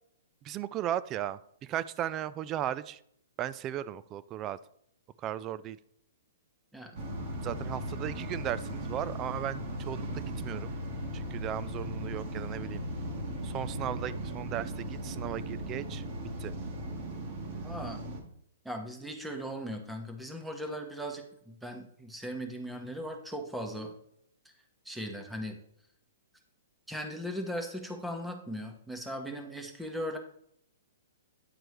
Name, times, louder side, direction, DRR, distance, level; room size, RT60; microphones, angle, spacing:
voice 1, 0.4-3.0 3.4-4.6 5.2-5.8 7.4-10.7 11.1-12.8 13.4-16.0 16.4-16.5, right 11 dB, 30° right, 16 dB, 0.3 m, -36 dB
sound 1, 6.9-18.2, equal, 45° right, 1.7 m, -37 dB
voice 2, 17.6-18.0 18.6-23.9 24.8-25.6 26.9-30.2, equal, 5° right, 4 dB, 1.1 m, -38 dB
9.3 x 4.5 x 3.3 m, 0.69 s
hypercardioid pair, 125°, 0 cm